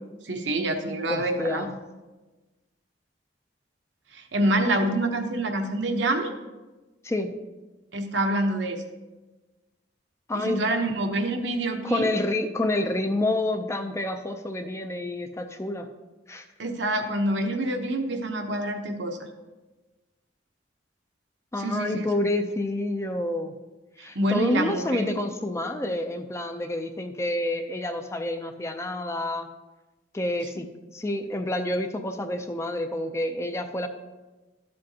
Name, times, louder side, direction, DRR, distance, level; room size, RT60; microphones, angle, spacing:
voice 1, 0.2-1.6 4.1-6.3 7.9-8.8 10.3-12.1 16.6-19.2 21.6-22.1 24.0-25.1, right 1 dB, 70° right, 4 dB, 0.9 m, -26 dB
voice 2, 1.1-1.7 7.0-7.3 10.3-10.6 11.8-15.9 16.3-16.4 21.5-23.5 24.0-29.5 30.1-30.7 30.9-33.9, left 1 dB, 15° left, 6 dB, 0.5 m, -28 dB
12.5 x 7.6 x 2.8 m, 1.2 s
head